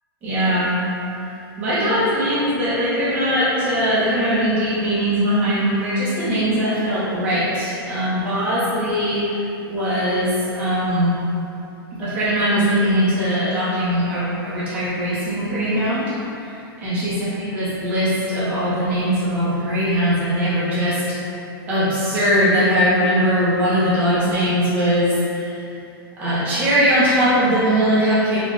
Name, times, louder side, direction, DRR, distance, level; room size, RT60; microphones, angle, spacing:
voice 1, 0.2-0.7 1.6-9.2 9.7-11.1 12.0-16.0 16.4-16.5 16.8-21.0 21.7-25.5 26.2-28.4, equal, 10° right, -11 dB, 0.8 m, -20 dB
3.9 x 2.3 x 3.2 m, 2.7 s
hypercardioid pair, 175°, 13 cm